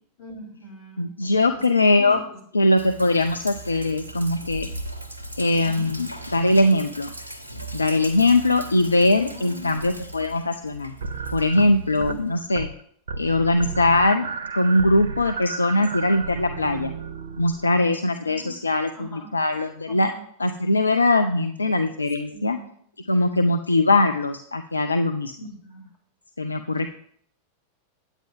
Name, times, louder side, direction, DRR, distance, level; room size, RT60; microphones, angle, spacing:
voice 1, 0.2-1.6 2.0-2.2 2.5-2.7 5.6-5.9 9.2-10.0 11.9-12.2 18.2-19.3 19.9-20.2 22.3-22.7 25.4-25.8, equal, 45° left, -5 dB, 4.4 m, -42 dB
voice 2, 1.0-2.2 2.5-4.7 5.4-7.1 7.7-10.9 11.3-12.7 13.2-14.3 14.5-16.9 17.4-20.1 20.4-22.6 23.1-25.3 26.4-26.9, left 2 dB, 80° left, 8 dB, 0.4 m, -21 dB
Sink (filling or washing), 2.8-12.5, right 1 dB, 80° right, 0.9 m, -38 dB
sound 1, 11.0-12.2 12.5-12.8 13.1-17.8, right 5 dB, 65° right, 0.6 m, -33 dB
9.0 x 8.8 x 3.6 m, 0.64 s
figure-of-eight pair, 90°, 0 cm